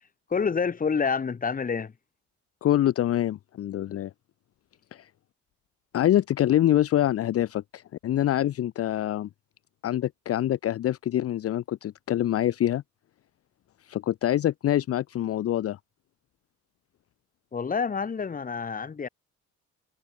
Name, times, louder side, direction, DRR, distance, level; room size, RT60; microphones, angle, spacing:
voice 1, 0.3-1.9 17.5-19.1, left 5 dB, 30° left, 1.1 m, -28 dB
voice 2, 2.6-4.1 4.9-5.1 5.9-9.3 9.8-12.8 13.8-15.8, left 12 dB, 50° left, 0.6 m, -25 dB
cardioid pair, 90°, 30 cm